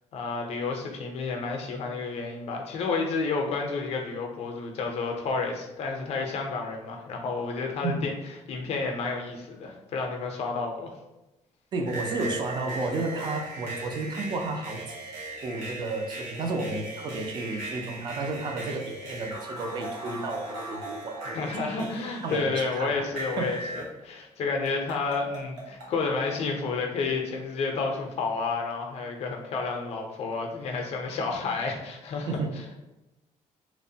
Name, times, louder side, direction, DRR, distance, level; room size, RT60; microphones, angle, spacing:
voice 1, 0.1-8.1 8.5-10.9 21.3-32.4, left 4 dB, 55° left, 2 dB, 0.5 m, -30 dB
voice 2, 11.7-14.9 15.4-21.5 21.8-21.9 22.2-23.1 23.4-23.6 32.3-32.5, right 3 dB, 35° right, 3 dB, 0.3 m, -32 dB
sound 1, 11.9-23.9 24.7-25.9, right 2 dB, 75° right, 0.9 m, -39 dB
2.9 x 2.0 x 2.7 m, 0.98 s
cardioid pair, 175°, 13 cm